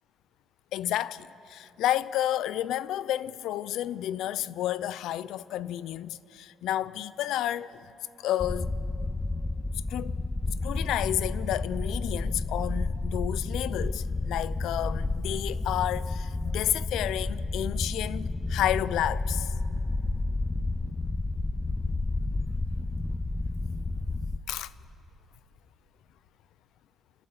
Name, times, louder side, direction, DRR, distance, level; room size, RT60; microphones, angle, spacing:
voice 1, 0.7-7.9 8.2-8.7 9.9-10.1 10.6-19.5 24.5-24.7, left 12 dB, 75° left, 0.5 m, -31 dB
sound 1, 8.4-24.4, left 2 dB, 15° left, 0.5 m, -31 dB
28.5 x 12.0 x 7.9 m
cardioid pair, 135°, 0 cm